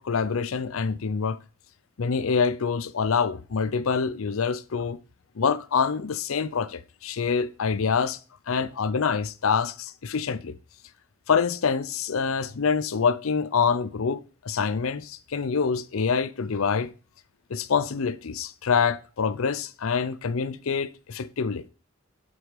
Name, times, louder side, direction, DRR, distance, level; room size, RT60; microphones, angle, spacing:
voice 1, 0.0-1.4 2.0-5.0 5.4-8.2 8.5-10.5 11.3-16.9 17.5-21.6, left 5 dB, 75° left, 0.5 m, -26 dB
7.9 x 5.5 x 4.9 m
head